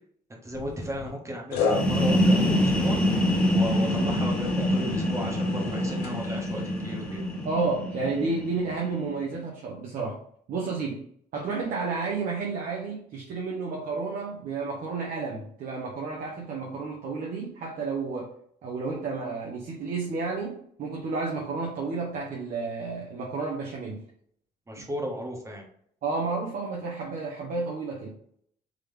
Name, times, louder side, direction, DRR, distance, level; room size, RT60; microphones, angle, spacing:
voice 1, 0.4-3.0 3.5-7.2 24.7-25.6, equal, 15° right, 0 dB, 1.3 m, -34 dB
sound 1, 0.5-1.1 1.5-7.5, left 5 dB, 80° left, 1.0 m, -35 dB
sound 2, 1.6-9.2, equal, 5° left, 1.5 m, -25 dB
voice 2, 7.4-10.2 10.5-11.0 11.3-18.3 18.6-24.0 26.0-28.1, right 4 dB, 55° right, -2 dB, 0.9 m, -31 dB
3.7 x 3.3 x 3.3 m, 0.65 s
cardioid pair, 110°, 17 cm